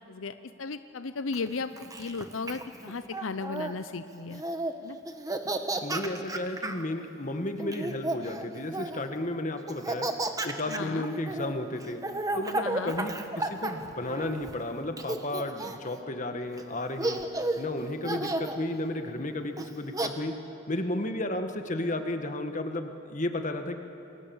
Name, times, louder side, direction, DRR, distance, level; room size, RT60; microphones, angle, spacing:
voice 1, 0.0-4.4 4.8-5.0 10.7-11.1 12.6-12.9, left 4 dB, 90° left, 11 dB, 0.7 m, -35 dB
Laughter, 1.3-3.7 4.3-4.7 5.1-6.8 7.6-9.1 9.7-14.5 15.0-15.9 16.6-16.7 17.0-17.6 18.0-18.6 19.6-20.1, right 2 dB, 20° right, 1.3 m, -33 dB
voice 2, 5.8-10.1 10.4-12.0 12.3-17.2 17.6-20.3 20.7-23.8, left 1 dB, 40° left, 6 dB, 1.7 m, -33 dB
28.5 x 23.0 x 7.2 m, 2.9 s
head